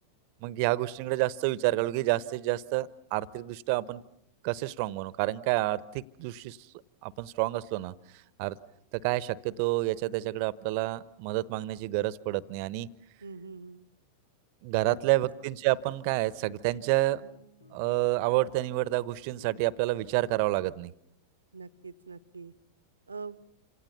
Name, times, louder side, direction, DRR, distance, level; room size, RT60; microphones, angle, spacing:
voice 1, 0.4-4.0 4.4-6.6 7.0-7.9 8.4-8.6 9.0-12.9 14.6-17.2 17.7-20.9, right 18 dB, 45° right, 20 dB, 1.0 m, -29 dB
voice 2, 13.2-13.9 14.8-15.2 21.5-22.5 23.1-23.4, right 4 dB, 75° right, 16 dB, 1.0 m, -43 dB
sound 1, 15.2-20.7, left 1 dB, 75° left, 1.8 m, -56 dB
28.0 x 26.5 x 7.1 m, 0.75 s
figure-of-eight pair, 90°, 0 cm